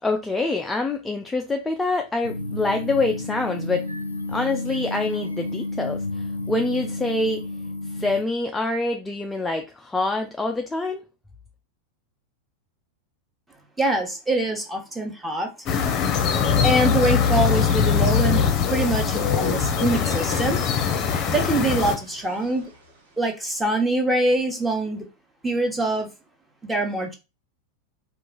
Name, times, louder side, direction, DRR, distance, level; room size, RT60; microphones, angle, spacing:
voice 1, 0.0-3.8 4.3-6.0 6.5-7.4 7.9-11.0, left 2 dB, 10° left, 0.5 m, -25 dB
sound 1, 2.2-8.2, left 2 dB, 90° left, 0.6 m, -31 dB
voice 2, 13.8-15.5 16.4-20.6 21.1-22.7 23.2-25.1 25.4-26.1 26.6-27.1, right 2 dB, 10° right, 1.2 m, -24 dB
sound 2, 15.7-22.0, left 7 dB, 35° left, 0.8 m, -22 dB
sound 3, 19.3-23.6, left 1 dB, 70° right, 1.4 m, -44 dB
4.4 x 2.5 x 3.8 m
figure-of-eight pair, 90°, 0 cm